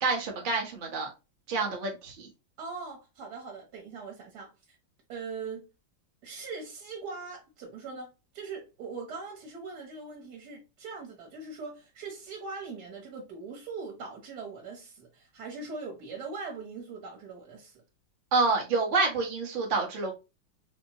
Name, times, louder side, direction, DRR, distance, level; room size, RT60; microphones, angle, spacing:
voice 1, 0.0-1.1 1.5-2.2 18.3-20.1, right 3 dB, 40° right, 0.8 m, -27 dB
voice 2, 2.6-4.5 5.1-5.6 6.2-17.8, right 4 dB, 60° right, 1.4 m, -41 dB
4.4 x 2.1 x 2.8 m
omnidirectional pair, 2.1 m